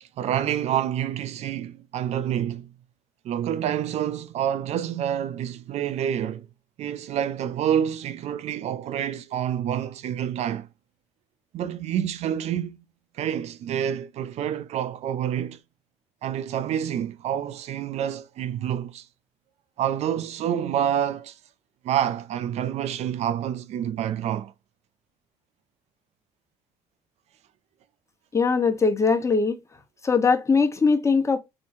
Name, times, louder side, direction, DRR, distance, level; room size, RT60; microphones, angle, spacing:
voice 1, 0.0-2.7 3.2-6.5 6.8-10.7 11.5-12.8 13.2-15.6 16.2-19.1 19.8-21.4 21.8-24.5, right 10 dB, 65° right, 0.5 m, -28 dB
voice 2, 28.3-29.6 30.0-31.4, left 4 dB, 25° left, 1.1 m, -21 dB
3.8 x 3.5 x 2.7 m
supercardioid pair, 75°, 12 cm